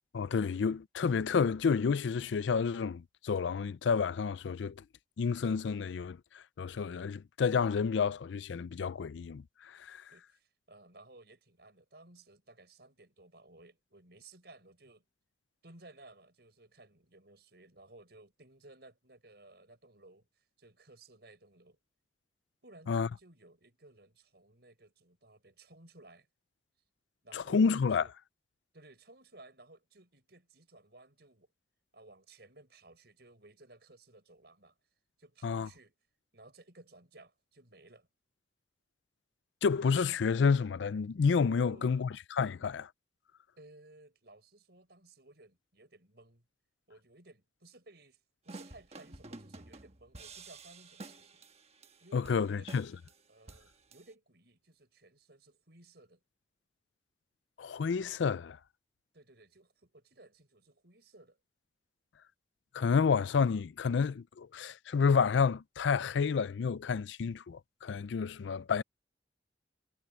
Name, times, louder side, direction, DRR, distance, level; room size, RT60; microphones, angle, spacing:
voice 1, 0.1-4.8 5.2-10.0 22.9-23.1 27.3-28.0 35.4-35.7 39.6-42.9 52.1-52.9 57.6-58.6 62.7-68.8, left 5 dB, 80° left, 0.4 m, -30 dB
voice 2, 10.1-15.1 15.6-21.8 22.6-26.3 27.2-28.1 28.7-31.5 31.9-34.8 35.2-36.0 36.3-38.1 41.6-42.1 43.6-46.5 46.9-51.5 52.0-52.8 53.3-56.2 59.1-61.4, right 2 dB, 60° right, 6.9 m, -58 dB
sound 1, 48.5-54.1, right 3 dB, 35° right, 1.3 m, -50 dB
head